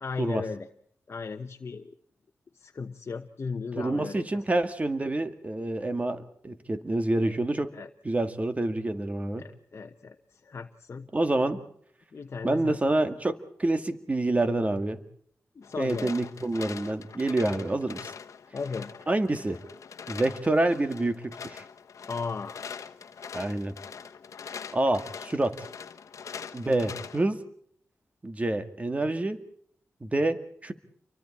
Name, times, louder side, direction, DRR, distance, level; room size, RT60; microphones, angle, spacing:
voice 1, 0.0-0.7 1.1-1.9 2.5-4.4 7.7-7.9 9.4-11.1 12.1-12.8 15.5-16.1 18.5-18.9 22.1-22.6, left 4 dB, 50° left, 4 dB, 1.1 m, -36 dB
voice 2, 3.8-7.8 8.0-9.4 11.1-11.6 12.4-15.0 15.8-18.1 19.1-19.6 20.1-21.7 23.3-23.7 24.7-25.6 26.5-27.4 28.2-29.4 30.0-30.7, right 2 dB, 25° right, 9 dB, 1.9 m, -27 dB
sound 1, 15.6-27.3, left 6 dB, 75° left, 1.1 m, -43 dB
29.5 x 24.0 x 4.3 m, 0.63 s
wide cardioid pair, 85°, 5 cm